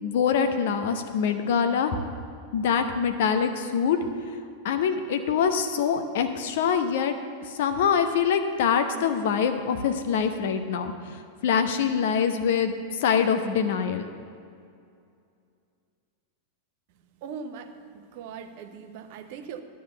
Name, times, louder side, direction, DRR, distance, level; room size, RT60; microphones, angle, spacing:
voice 1, 0.0-2.0 2.5-4.0 4.6-7.1 7.5-14.1, left 7 dB, 55° left, 8 dB, 0.8 m, -24 dB
voice 2, 17.2-17.7 18.1-19.6, right 6 dB, 50° right, 7 dB, 0.9 m, -39 dB
12.0 x 5.4 x 7.8 m, 2.4 s
figure-of-eight pair, 90°, 0 cm